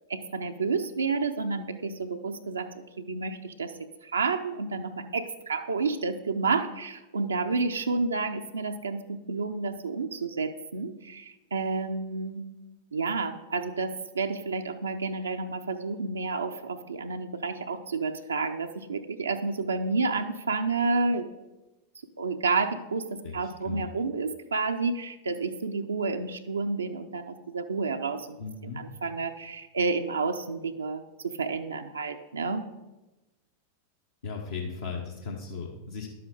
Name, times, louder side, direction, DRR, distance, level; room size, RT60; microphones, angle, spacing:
voice 1, 0.0-2.7 3.0-3.7 4.0-12.4 12.9-21.3 22.2-28.4 28.8-32.6, right 4 dB, 75° right, 4 dB, 0.6 m, -30 dB
voice 2, 23.2-23.9 28.4-28.8 34.2-36.1, left 5 dB, 65° left, -1 dB, 1.2 m, -37 dB
11.0 x 7.8 x 4.9 m, 1.0 s
figure-of-eight pair, 90°, 0 cm